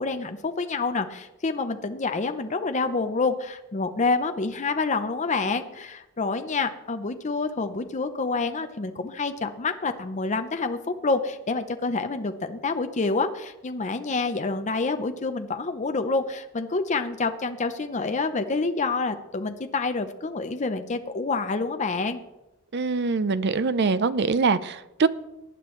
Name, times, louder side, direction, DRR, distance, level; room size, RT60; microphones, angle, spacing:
voice 1, 0.0-22.2, left 3 dB, 35° left, 7 dB, 0.6 m, -27 dB
voice 2, 22.7-25.1, right 4 dB, 55° right, 14 dB, 0.5 m, -23 dB
18.5 x 10.0 x 3.2 m, 0.94 s
head